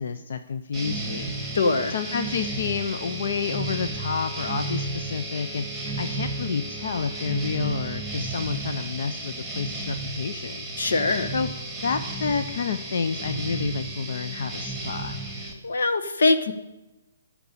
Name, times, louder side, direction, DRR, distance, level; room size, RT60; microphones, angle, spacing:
voice 1, 0.0-1.3 1.9-10.7 11.3-11.5 11.8-15.1, left 6 dB, 50° left, 9 dB, 0.6 m, -29 dB
sound 1, 0.7-15.5, right 2 dB, 5° left, 1.8 m, -33 dB
voice 2, 1.5-1.9 10.8-11.3 15.6-16.5, left 3 dB, 80° left, 8 dB, 1.3 m, -22 dB
12.5 x 5.9 x 8.4 m, 1.0 s
hypercardioid pair, 175°, 0 cm